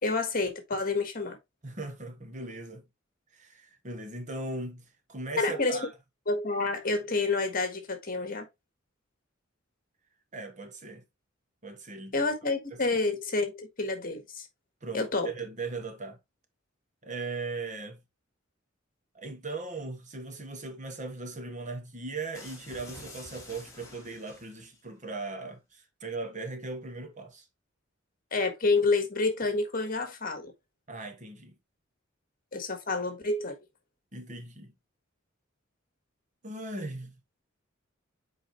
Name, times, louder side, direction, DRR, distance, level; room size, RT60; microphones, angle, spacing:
voice 1, 0.0-1.4 5.4-5.9 6.3-8.4 12.1-14.5 14.9-15.3 28.3-30.5 32.5-33.6, left 3 dB, 45° left, 1.6 m, -28 dB
voice 2, 1.6-2.8 3.3-5.9 10.3-11.0 11.6-12.1 12.7-12.8 14.8-16.2 17.0-18.0 19.1-27.4 30.9-31.5 34.1-34.7 36.4-37.1, right 3 dB, 40° right, 1.2 m, -38 dB
sound 1, 22.3-24.8, left 2 dB, 15° left, 2.5 m, -48 dB
7.8 x 4.5 x 3.1 m
head